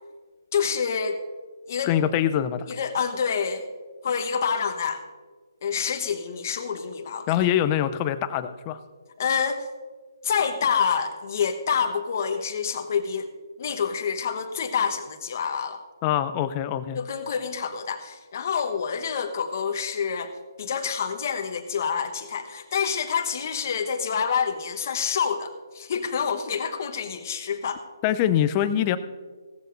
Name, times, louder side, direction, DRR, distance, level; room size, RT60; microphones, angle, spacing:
voice 1, 0.5-1.2 1.7-2.0 2.7-3.7 4.0-5.0 5.6-7.4 9.2-9.7 10.2-13.3 13.6-15.8 16.9-27.8, left 6 dB, 45° left, 6 dB, 1.1 m, -27 dB
voice 2, 1.8-2.7 7.3-8.8 16.0-17.0 28.0-29.0, left 11 dB, 25° left, 11 dB, 0.5 m, -24 dB
16.5 x 14.0 x 2.6 m, 1.5 s
figure-of-eight pair, 145°, 2 cm